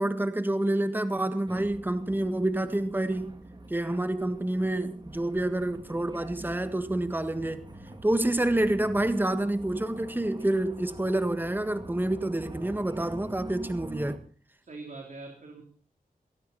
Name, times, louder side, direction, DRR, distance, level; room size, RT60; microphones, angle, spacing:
voice 1, 0.0-3.4 3.7-7.6 8.0-14.2, right 1 dB, 15° right, 1.6 m, -28 dB
sound 1, 1.5-14.2, right 1 dB, 30° right, 2.6 m, -45 dB
voice 2, 14.6-15.6, right 3 dB, 60° right, 3.4 m, -43 dB
19.0 x 18.0 x 4.2 m
wide cardioid pair, 115°, 15 cm